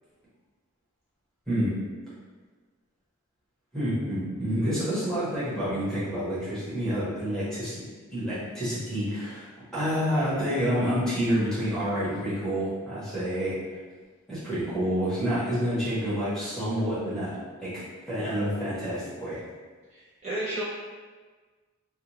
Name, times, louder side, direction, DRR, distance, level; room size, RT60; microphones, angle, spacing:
voice 1, 3.7-13.6 14.3-17.3 17.6-17.7 18.1-19.4, equal, 5° left, -12 dB, 0.9 m, -28 dB
voice 2, 19.9-20.6, right 1 dB, 30° right, -11 dB, 0.7 m, -32 dB
2.4 x 2.3 x 2.9 m, 1.4 s
head